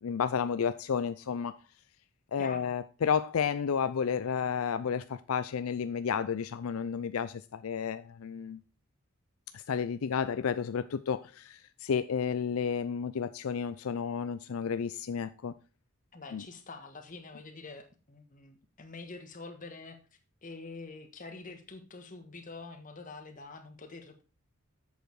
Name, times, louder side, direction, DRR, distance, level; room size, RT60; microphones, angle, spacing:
voice 1, 0.0-1.6 2.3-8.6 9.5-15.5 16.3-16.4, left 6 dB, 80° left, 0.4 m, -32 dB
voice 2, 2.4-2.7 16.1-20.0 20.4-24.2, left 3 dB, 40° left, 1.5 m, -46 dB
7.9 x 6.7 x 4.7 m
head